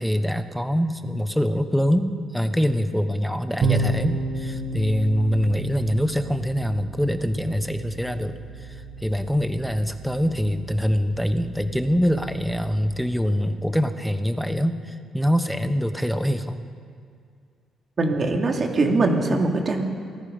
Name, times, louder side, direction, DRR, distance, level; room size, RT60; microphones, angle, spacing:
voice 1, 0.0-16.6, equal, ahead, 9 dB, 1.2 m, -24 dB
sound 1, 3.6-13.0, right 3 dB, 50° right, 2.2 m, -32 dB
voice 2, 18.0-19.8, right 2 dB, 35° right, 2 dB, 2.8 m, -22 dB
27.0 x 20.0 x 5.4 m, 2.2 s
cardioid pair, 135°, 0 cm